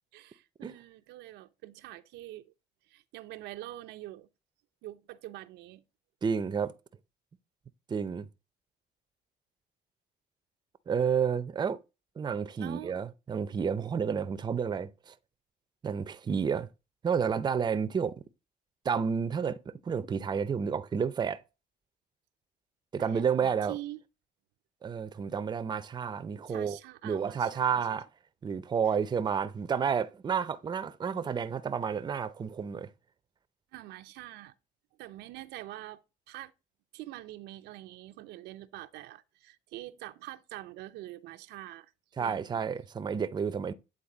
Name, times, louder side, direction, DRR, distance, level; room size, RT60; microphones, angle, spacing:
voice 1, 0.1-2.5 2.9-4.3 4.8-5.8 12.6-12.9 23.0-24.0 26.5-28.0 33.7-34.5 35.0-36.0 36.3-36.5 36.9-41.9 42.2-42.6, right 15 dB, 85° right, 0.6 m, -45 dB
voice 2, 6.2-6.7 7.9-8.2 10.9-11.8 12.2-15.1 15.8-16.7 17.0-18.2 18.8-21.4 22.9-23.8 24.8-26.8 27.0-28.1 28.4-32.9 42.2-43.7, right 6 dB, 25° right, 0.5 m, -30 dB
8.7 x 4.0 x 3.8 m
cardioid pair, 110°, 17 cm